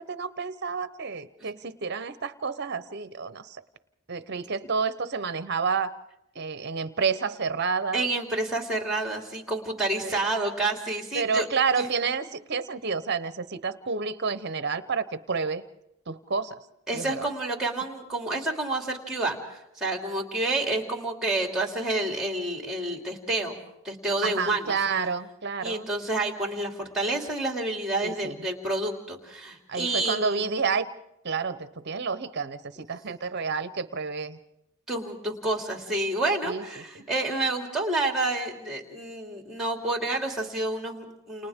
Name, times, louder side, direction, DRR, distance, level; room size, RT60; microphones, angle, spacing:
voice 1, 0.0-3.6 4.1-5.9 6.4-8.1 10.0-10.2 11.1-15.6 16.1-16.6 16.9-17.3 24.2-25.9 28.0-28.3 29.7-30.9 31.2-34.4 36.4-36.8, right 5 dB, 50° right, 13 dB, 0.8 m, -29 dB
voice 2, 7.9-11.5 11.8-11.9 16.9-23.6 23.8-24.7 25.6-30.5 34.9-41.5, right 2 dB, ahead, 2 dB, 2.8 m, -29 dB
29.5 x 29.0 x 3.6 m, 0.84 s
head